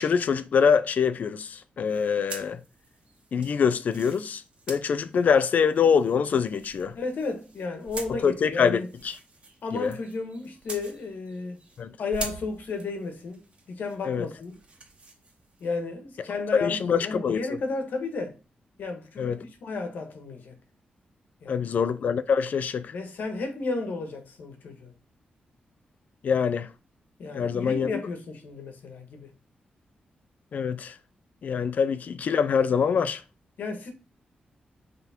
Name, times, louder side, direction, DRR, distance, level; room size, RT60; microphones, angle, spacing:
voice 1, 0.0-2.6 3.3-4.4 4.7-6.9 8.1-9.1 9.7-9.9 11.8-11.9 14.0-14.2 16.6-17.4 19.2-19.4 21.5-22.9 26.2-26.7 27.3-27.9 30.5-30.9 31.4-33.2, left 6 dB, 60° left, 0.5 m, -24 dB
sound 1, 1.8-11.8 12.1-15.8, right 3 dB, 35° right, 1.9 m, -45 dB
voice 2, 6.9-8.9 9.6-11.6 12.0-14.6 15.6-18.4 18.8-20.6 21.4-21.6 22.9-24.9 27.2-29.3 33.6-33.9, left 3 dB, 75° left, 1.5 m, -33 dB
5.8 x 3.8 x 4.4 m
wide cardioid pair, 145°, 3 cm